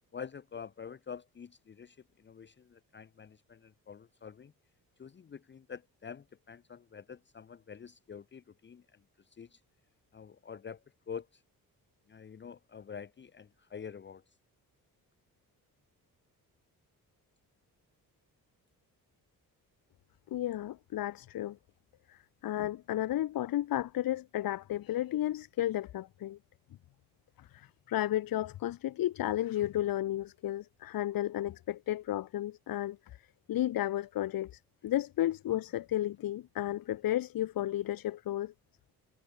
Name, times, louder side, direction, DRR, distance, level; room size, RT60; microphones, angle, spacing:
voice 1, 0.1-4.5 5.0-9.0 9.3-9.6 10.1-11.4 12.1-14.2, left 7 dB, 30° left, 0.8 m, -47 dB
voice 2, 20.3-21.6 22.1-22.2 22.4-26.4 27.5-33.0 33.5-38.5, left 13 dB, 70° left, 1.0 m, -33 dB
cardioid pair, 130°, 36 cm